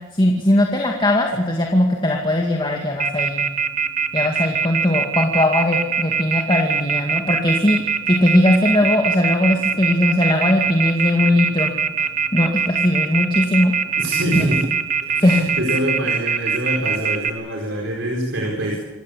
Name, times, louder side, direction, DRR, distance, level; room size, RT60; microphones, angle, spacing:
voice 1, 0.1-3.5 4.1-7.8 8.1-12.1 12.3-13.7 14.4-14.5 15.2-15.4, left 1 dB, 25° left, 0 dB, 2.1 m, -19 dB
Telephone, 3.0-17.3, right 6 dB, 40° right, 1.2 m, -21 dB
voice 2, 14.0-14.6 15.0-18.8, right 1 dB, 80° right, 0 dB, 4.6 m, -24 dB
27.0 x 15.0 x 8.3 m, 1.1 s
head